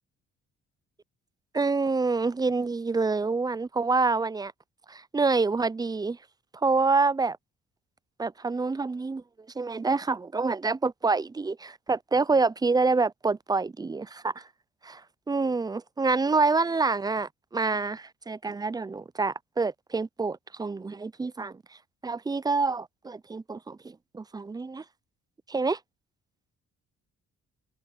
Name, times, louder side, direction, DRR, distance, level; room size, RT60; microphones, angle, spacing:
voice 1, 1.5-4.5 4.9-6.2 6.6-7.4 8.2-9.2 9.6-14.4 14.8-15.0 15.3-21.6 22.0-24.8 25.5-25.8, right 4 dB, 15° right, 0.4 m, -27 dB
cardioid pair, 90°, 30 cm